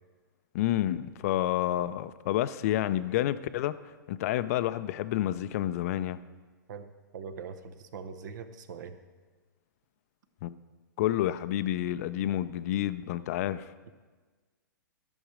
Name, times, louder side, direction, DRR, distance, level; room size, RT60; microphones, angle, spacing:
voice 1, 0.5-3.7 4.1-6.2 10.4-10.5 11.0-13.7, left 13 dB, 45° left, 14 dB, 0.4 m, -29 dB
voice 2, 6.7-9.0, right 6 dB, 60° right, 9 dB, 0.7 m, -42 dB
11.0 x 6.3 x 4.9 m, 1.4 s
hypercardioid pair, 130°, 11 cm